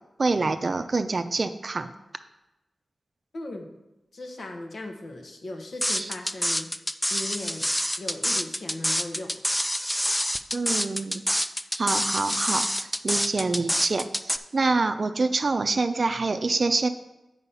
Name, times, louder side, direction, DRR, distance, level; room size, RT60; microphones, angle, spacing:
voice 1, 0.2-1.9 6.0-6.1 10.5-16.9, right 3 dB, 50° right, 9 dB, 0.5 m, -26 dB
voice 2, 3.3-3.7 4.1-6.7 7.1-7.7 8.0-9.4, left 2 dB, 65° left, 3 dB, 1.2 m, -37 dB
sound 1, 5.8-14.4, equal, 5° left, 0.4 m, -26 dB
8.3 x 4.9 x 5.6 m, 0.99 s
wide cardioid pair, 85°, 0 cm